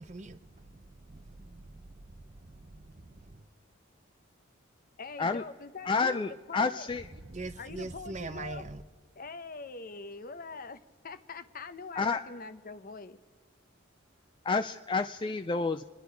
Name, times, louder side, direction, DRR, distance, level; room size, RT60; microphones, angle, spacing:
voice 1, 0.0-3.2 7.2-8.8, right 2 dB, 35° right, 0.7 m, -43 dB
voice 2, 5.0-6.9 7.6-8.7 9.1-13.2, left 4 dB, 45° left, 0.7 m, -43 dB
voice 3, 5.9-7.0 12.0-12.2 14.5-15.8, left 4 dB, 25° left, 0.3 m, -29 dB
28.0 x 10.5 x 4.6 m
head